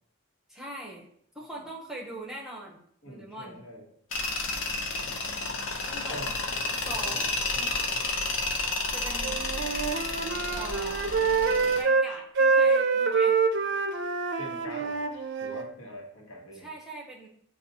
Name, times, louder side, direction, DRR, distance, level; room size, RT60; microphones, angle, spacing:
voice 1, 0.5-1.1 1.3-3.6 5.9-6.2 6.7-7.2 8.9-9.4 10.5-11.1 11.7-13.4 16.5-17.3, right 1 dB, ahead, -3 dB, 0.6 m, -41 dB
voice 2, 3.0-3.9 5.1-5.3 6.1-6.3 6.9-7.2 7.5-7.9 14.4-15.1 15.4-16.7, equal, 85° left, -1 dB, 1.1 m, -43 dB
Tools, 4.1-11.8, left 3 dB, 65° left, 0.6 m, -31 dB
Wind instrument woodwind instrument, 9.2-12.1 12.4-15.7, right 4 dB, 55° right, 0.4 m, -26 dB
6.6 x 2.4 x 2.7 m, 0.65 s
head